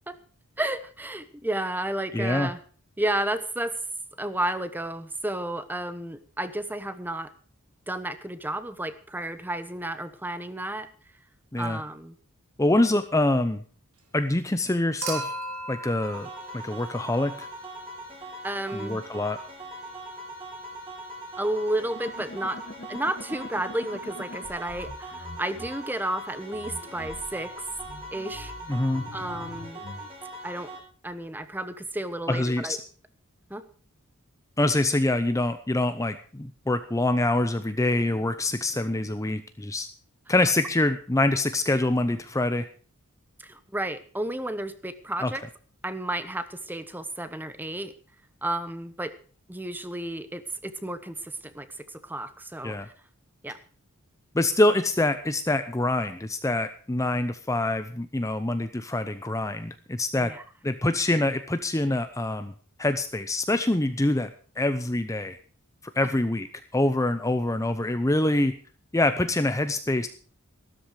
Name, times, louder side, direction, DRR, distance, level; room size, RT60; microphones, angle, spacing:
voice 1, 0.6-2.6 3.0-3.8 4.2-7.3 7.9-10.9 11.6-12.1 18.4-19.0 21.4-22.6 22.9-27.5 28.1-28.5 29.1-29.8 30.4-30.7 31.0-32.8 33.5-33.6 43.4-45.4 45.8-47.9 48.4-49.1 49.5-52.9 53.4-53.6 60.2-60.4, right 1 dB, 10° right, 12 dB, 1.0 m, -32 dB
voice 2, 2.1-2.5 11.5-11.8 12.6-13.6 14.1-15.3 15.7-17.5 18.7-19.4 28.7-29.0 32.3-32.8 34.6-39.9 40.3-42.7 45.2-45.3 52.6-52.9 54.3-60.3 60.6-62.5 62.8-64.3 64.6-65.4 65.8-66.5 66.7-68.5 68.9-70.1, left 2 dB, 15° left, 9 dB, 0.7 m, -25 dB
Human group actions / Chink clink / Liquid, 15.0-17.4 18.9-19.0, right 2 dB, 85° right, 3.8 m, -36 dB
sound 1, 16.0-30.8, right 1 dB, 25° right, 4.7 m, -41 dB
sound 2, 22.0-25.7 26.5-30.1, left 1 dB, 40° left, 1.8 m, -43 dB
14.0 x 13.0 x 4.8 m, 0.40 s
head